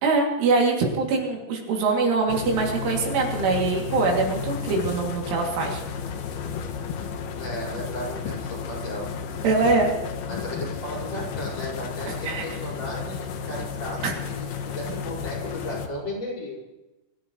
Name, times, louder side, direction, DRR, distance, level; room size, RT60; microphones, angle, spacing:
voice 1, 0.0-5.8 9.4-9.9 12.2-12.5 14.0-14.1, right 3 dB, 80° right, 0 dB, 5.2 m, -23 dB
sound 1, 2.3-15.9, left 6 dB, 75° left, 2.1 m, -33 dB
voice 2, 7.4-9.1 10.3-16.6, equal, 35° left, -5 dB, 5.7 m, -35 dB
25.0 x 14.5 x 3.2 m, 1.0 s
omnidirectional pair, 5.5 m